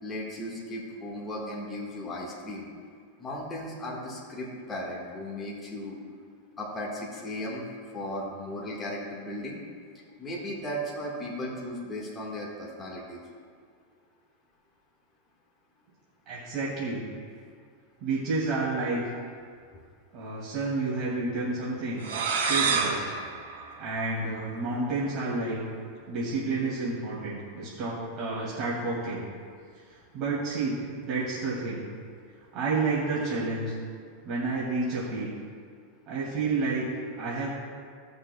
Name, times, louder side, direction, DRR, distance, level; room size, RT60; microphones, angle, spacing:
voice 1, 0.0-2.7 3.2-6.0 6.6-9.6 10.2-13.2, left 1 dB, 20° left, -4 dB, 1.6 m, -36 dB
voice 2, 16.3-17.0 18.0-19.0 20.1-22.0 22.5-23.0 23.8-25.6 26.1-29.2 29.9-30.8 31.0-31.8 32.5-33.7 34.2-35.3 36.1-36.9 37.2-37.5, right 3 dB, 40° right, -7 dB, 2.3 m, -30 dB
sound 1, 22.0-24.6, right 5 dB, 80° right, 2.5 m, -29 dB
17.5 x 6.5 x 2.3 m, 2.1 s
supercardioid pair, 135°, 0 cm